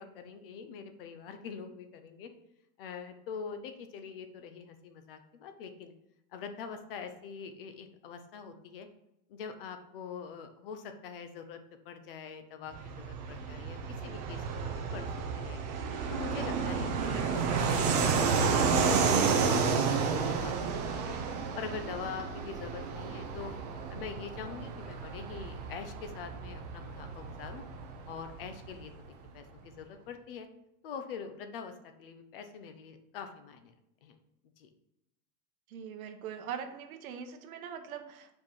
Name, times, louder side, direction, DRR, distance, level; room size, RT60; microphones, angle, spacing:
voice 1, 0.0-2.3 2.8-5.9 6.3-8.9 9.3-11.6 11.9-15.1 15.4-15.6 16.1-19.8 20.2-21.1 21.5-23.5 23.9-27.7 28.1-28.9 29.3-30.5 30.8-31.7 32.0-33.7 34.0-34.2 34.6-34.7, left 6 dB, 40° left, 8 dB, 0.6 m, -44 dB
Fixed-wing aircraft airplane, 12.7-28.9, right 5 dB, 30° right, 0.5 m, -31 dB
voice 2, 35.7-38.4, right 7 dB, 65° right, 6 dB, 1.1 m, -42 dB
5.2 x 4.6 x 5.4 m, 0.86 s
supercardioid pair, 180°, 45 cm